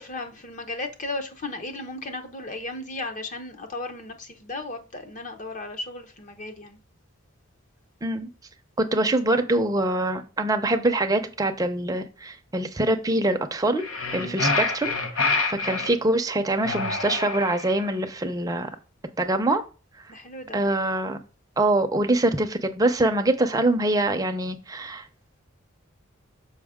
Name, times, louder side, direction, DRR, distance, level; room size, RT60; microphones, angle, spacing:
voice 1, 0.0-6.8 14.2-14.5 20.1-20.6, left 2 dB, 35° left, 0.8 m, -35 dB
voice 2, 8.8-13.8 14.1-18.7 19.2-19.6 20.5-21.2 21.6-25.0, right 2 dB, 15° right, 0.6 m, -24 dB
sound 1, 13.8-15.9 16.6-17.8, left 3 dB, 80° left, 1.1 m, -27 dB
6.3 x 5.2 x 3.6 m
head